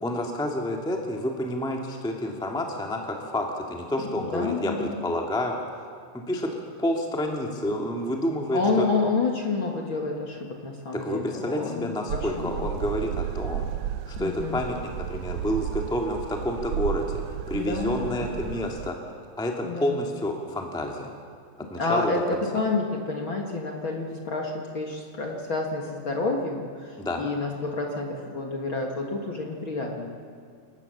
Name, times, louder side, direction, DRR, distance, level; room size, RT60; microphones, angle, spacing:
voice 1, 0.0-5.5 6.1-8.9 10.9-13.7 14.1-19.1 19.4-21.1 21.6-22.4 27.0-27.3, left 1 dB, ahead, 1 dB, 1.2 m, -29 dB
voice 2, 4.1-5.0 8.5-12.7 14.2-14.6 17.5-18.4 19.6-20.0 21.8-30.1, left 3 dB, 45° left, 1 dB, 2.0 m, -29 dB
sound 1, 12.1-18.9, right 11 dB, 75° right, 1.9 m, -33 dB
28.5 x 16.0 x 6.9 m, 2.2 s
omnidirectional pair, 4.2 m